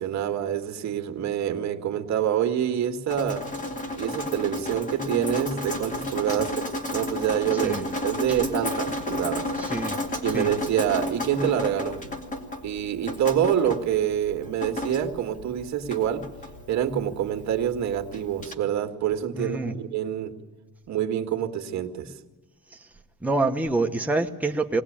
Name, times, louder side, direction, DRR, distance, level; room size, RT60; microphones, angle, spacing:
voice 1, 0.0-3.5 3.9-7.8 8.0-9.5 10.2-12.0 12.6-16.3 16.7-20.4 20.9-22.1, right 10 dB, 60° right, 5 dB, 1.9 m, -26 dB
Drip, 3.1-18.5, left 1 dB, 25° left, 2.4 m, -33 dB
voice 2, 9.6-9.9 10.3-10.5 19.4-19.7 23.2-24.8, right 2 dB, 5° right, 2 dB, 1.2 m, -26 dB
21.5 x 19.0 x 8.8 m, 1.3 s
cardioid pair, 150°, 31 cm